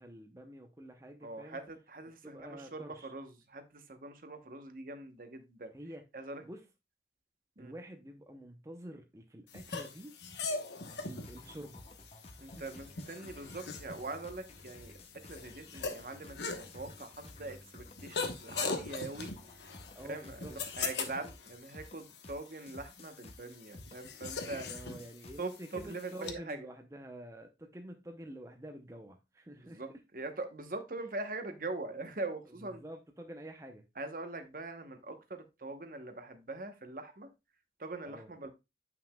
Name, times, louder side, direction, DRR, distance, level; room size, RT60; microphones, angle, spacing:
voice 1, 0.0-1.6 2.2-3.1 5.7-6.0 6.4-6.6 7.6-10.1 11.0-12.8 19.9-20.6 24.6-30.0 32.6-33.8 38.0-38.3, right 1 dB, 15° right, 0.6 m, -48 dB
voice 2, 1.2-5.7 6.1-6.4 7.6-7.7 12.4-19.3 20.0-24.7 25.4-26.6 29.7-32.8 34.0-37.3 37.8-38.5, right 2 dB, 50° right, 0.9 m, -42 dB
sound 1, 9.5-26.3, left 4 dB, 80° left, 1.0 m, -42 dB
sound 2, 10.9-26.5, left 1 dB, 35° left, 0.9 m, -54 dB
9.3 x 5.8 x 2.2 m
head